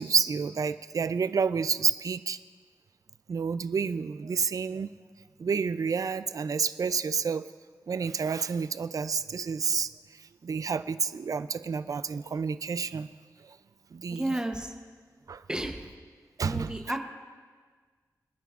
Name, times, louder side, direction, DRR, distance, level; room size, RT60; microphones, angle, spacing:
voice 1, 0.0-2.4 3.3-4.9 5.4-7.5 7.9-9.9 10.4-13.1 13.9-14.4 15.3-15.4 16.4-16.7, right 5 dB, 55° right, 13 dB, 0.4 m, -29 dB
voice 2, 14.1-14.7 15.5-15.9 16.4-17.1, right 1 dB, 10° right, 4 dB, 0.9 m, -32 dB
25.5 x 10.5 x 2.5 m, 1.5 s
wide cardioid pair, 90°, 7 cm